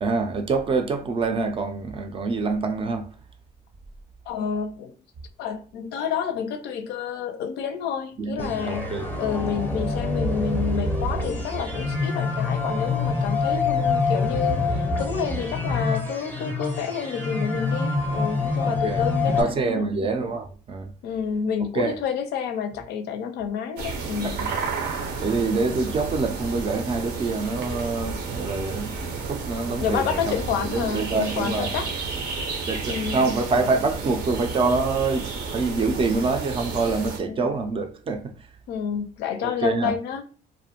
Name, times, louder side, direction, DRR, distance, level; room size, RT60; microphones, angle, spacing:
voice 1, 0.0-3.1 8.2-9.1 18.6-19.1 19.4-20.9 21.7-22.0 24.2-24.6 25.2-29.0 29.3-31.7 32.7-38.5 39.4-39.9, right 3 dB, 30° right, 0.4 m, -26 dB
voice 2, 4.3-5.0 5.4-8.9 9.2-19.9 21.0-24.3 29.8-31.9 32.9-33.2 37.3-37.5 38.7-40.2, left 7 dB, 75° left, 0.4 m, -29 dB
sound 1, 8.4-19.4, left 3 dB, 10° left, 0.6 m, -26 dB
sound 2, 23.8-37.2, right 4 dB, 75° right, 0.6 m, -31 dB
2.5 x 2.1 x 2.8 m
cardioid pair, 110°, 17 cm